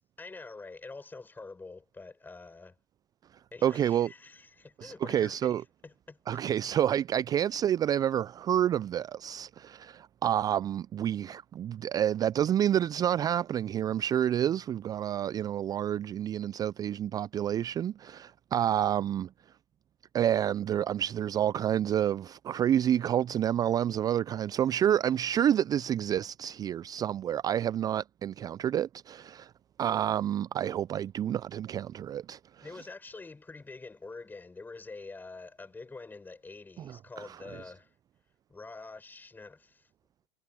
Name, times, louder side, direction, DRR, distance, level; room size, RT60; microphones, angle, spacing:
voice 1, 0.0-2.8 3.5-6.2 32.6-37.9 38.5-39.9, left 3 dB, 15° left, 5.9 m, -46 dB
voice 2, 3.6-4.1 4.8-5.6 6.3-19.3 20.1-29.5 29.8-32.4 37.2-37.4, right 10 dB, 30° right, 0.4 m, -29 dB
hypercardioid pair, 90°, 13 cm